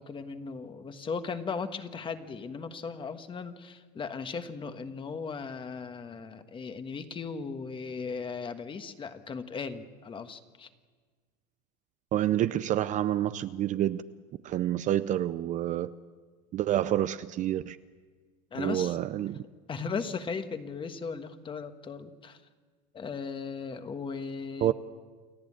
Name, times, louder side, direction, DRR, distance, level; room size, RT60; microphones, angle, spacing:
voice 1, 0.0-10.7 18.5-19.0 19.7-22.4 22.9-24.7, left 5 dB, 25° left, 9 dB, 1.5 m, -37 dB
voice 2, 12.1-14.0 14.4-15.9 16.5-17.8 18.6-19.4 24.6-24.7, right 12 dB, 35° right, 14 dB, 0.6 m, -28 dB
29.0 x 11.5 x 8.7 m, 1.5 s
supercardioid pair, 110°, 21 cm